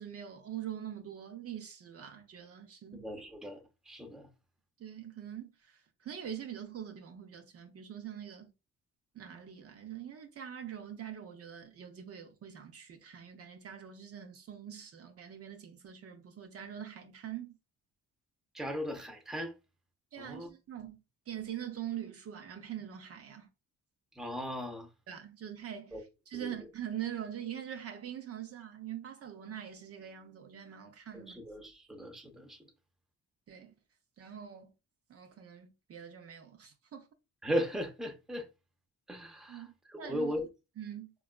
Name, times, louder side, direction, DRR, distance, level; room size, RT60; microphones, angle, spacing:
voice 1, 0.0-3.0 4.8-8.5 9.1-17.6 20.1-21.0 21.3-23.5 25.1-31.4 33.5-33.7 34.2-34.7 35.1-37.1 39.5-40.4 40.8-41.1, right 10 dB, 50° right, 0.6 m, -43 dB
voice 2, 2.9-3.6 3.9-4.3 18.5-19.5 20.2-20.5 24.2-24.9 25.9-26.0 26.4-26.5 31.1-32.6 37.4-38.4 39.1-39.6 39.9-40.4, equal, ahead, 0.6 m, -37 dB
4.0 x 2.3 x 2.3 m
cardioid pair, 90°, 30 cm